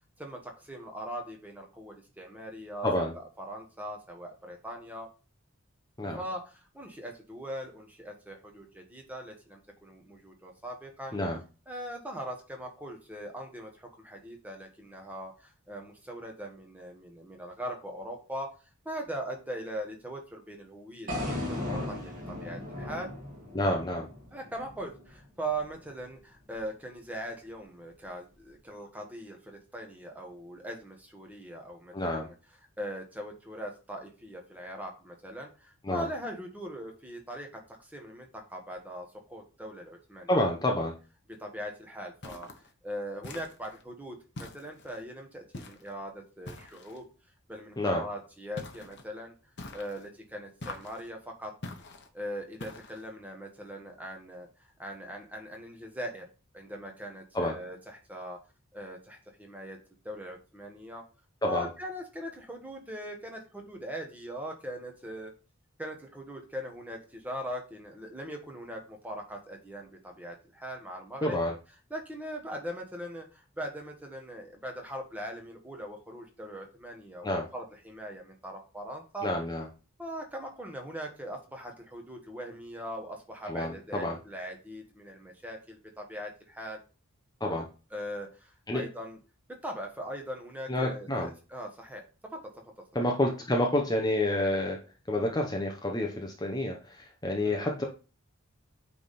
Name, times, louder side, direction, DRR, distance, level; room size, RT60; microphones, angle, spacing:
voice 1, 0.2-5.1 6.2-11.2 11.7-23.1 24.3-32.3 32.8-40.8 41.3-42.5 42.8-47.0 47.5-49.3 49.7-51.5 52.1-56.3 56.5-58.4 58.7-59.8 60.0-61.0 61.4-65.3 65.8-71.4 71.9-79.3 80.0-86.8 87.9-89.2 89.5-92.0 92.3-92.5 97.4-97.7, equal, 5° right, 2 dB, 1.3 m, -41 dB
sound 1, 21.1-25.2, left 1 dB, 40° right, 2.6 m, -37 dB
voice 2, 23.5-24.1 31.9-32.3 35.8-36.1 40.3-40.9 47.8-48.0 57.3-57.5 61.4-61.7 71.2-71.5 77.2-77.4 79.2-79.7 83.5-84.2 87.4-87.7 88.7-88.9 90.7-91.3 92.9-94.8 95.1-97.8, left 1 dB, 20° left, 1 dB, 0.8 m, -29 dB
sound 2, 42.2-42.7 43.2-43.8 44.3-45.0 45.5-45.9 46.4-47.0 48.6-49.0 49.6-50.1 50.6-51.1 51.6-52.1 52.6-53.1, left 2 dB, 50° left, 1.0 m, -44 dB
8.8 x 3.5 x 4.2 m, 0.34 s
head